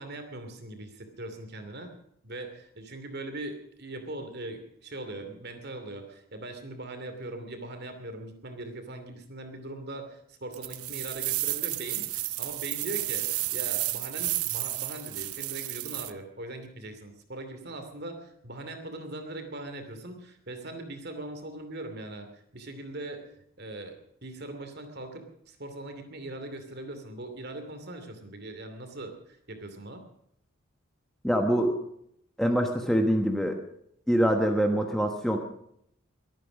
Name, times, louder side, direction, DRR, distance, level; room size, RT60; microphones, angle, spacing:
voice 1, 0.0-1.9 2.2-23.2 23.6-30.0, right 2 dB, 45° right, 6 dB, 2.6 m, -40 dB
sound 1, 10.5-16.1, right 17 dB, 85° right, 0.8 m, -32 dB
voice 2, 31.2-31.8 32.4-33.6 34.1-35.4, equal, ahead, 4 dB, 1.2 m, -24 dB
22.5 x 9.2 x 6.3 m, 0.72 s
head